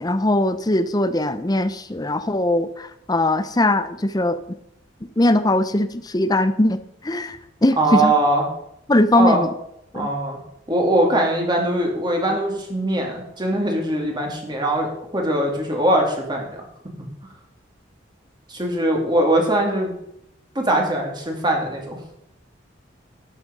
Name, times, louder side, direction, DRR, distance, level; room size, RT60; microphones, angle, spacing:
voice 1, 0.0-4.4 5.2-6.8 7.0-8.1 8.9-9.5 9.9-10.1, left 1 dB, 20° left, 13 dB, 0.6 m, -20 dB
voice 2, 7.8-8.4 9.2-9.4 9.9-10.4 10.7-16.6 18.5-19.9 20.5-22.0, right 1 dB, 25° right, 1 dB, 2.6 m, -21 dB
12.0 x 8.9 x 5.3 m, 0.78 s
head